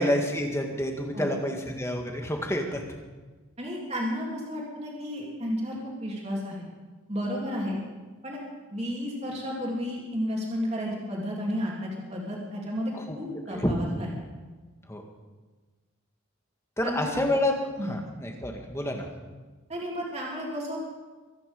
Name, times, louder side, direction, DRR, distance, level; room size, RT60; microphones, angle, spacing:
voice 1, 0.0-2.8 12.9-13.2 13.5-13.7 14.9-15.0 16.8-17.5 17.9-19.1, left 1 dB, 15° left, 2 dB, 1.8 m, -28 dB
voice 2, 3.6-6.6 7.1-7.8 8.2-8.4 8.7-14.1 16.8-17.2 17.8-18.0 19.7-20.8, equal, 30° right, -3 dB, 3.3 m, -32 dB
24.0 x 10.0 x 5.4 m, 1.3 s
head